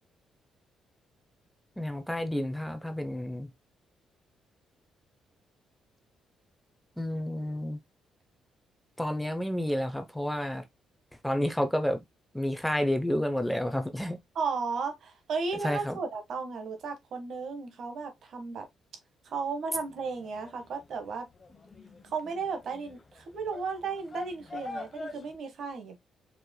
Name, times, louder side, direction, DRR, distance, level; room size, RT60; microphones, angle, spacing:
voice 1, 1.8-3.5 7.0-7.8 9.0-10.6 11.2-12.0 12.3-14.2 15.6-16.0, left 1 dB, 5° left, 0.7 m, -30 dB
voice 2, 14.3-18.7 19.2-21.3 22.0-26.0, right 5 dB, 60° right, 1.4 m, -34 dB
sound 1, 19.8-25.4, left 3 dB, 30° left, 1.1 m, -45 dB
4.8 x 4.4 x 2.2 m
cardioid pair, 90°, 0 cm